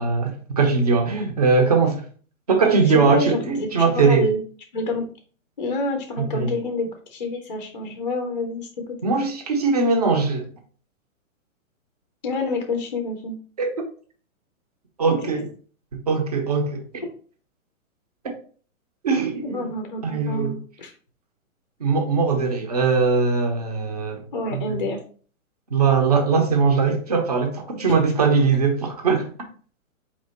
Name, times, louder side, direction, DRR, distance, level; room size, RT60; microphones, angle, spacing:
voice 1, 0.0-2.0 2.5-4.3 6.2-6.5 9.0-10.5 13.6-13.7 15.0-15.5 16.1-16.9 18.2-18.3 19.0-19.6 20.0-20.6 21.8-24.3 24.5-24.6 25.7-29.3, right 4 dB, 30° right, 0.6 m, -20 dB
voice 2, 2.9-4.4 4.7-5.1 5.6-8.9 12.2-13.4 15.2-15.4 19.4-20.9 24.3-25.0, left 2 dB, 35° left, 0.5 m, -28 dB
4.3 x 3.0 x 4.0 m
hypercardioid pair, 175°, 41 cm